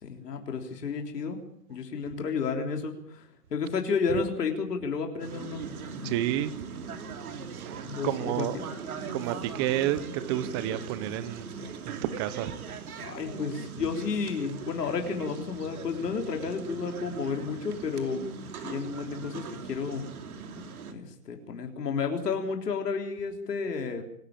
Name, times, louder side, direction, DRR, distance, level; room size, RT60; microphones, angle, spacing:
voice 1, 0.0-1.4 1.7-5.6 6.0-6.1 7.9-8.5 13.0-18.3 18.6-20.1 20.9-24.0, left 5 dB, 75° left, 3 dB, 3.8 m, -31 dB
sound 1, 5.2-20.9, right 5 dB, 60° right, 3.2 m, -40 dB
voice 2, 6.0-6.5 7.7-8.6 9.1-11.5 11.8-12.5, right 12 dB, 15° right, 15 dB, 0.8 m, -30 dB
25.5 x 13.0 x 8.9 m, 0.69 s
hypercardioid pair, 155°, 48 cm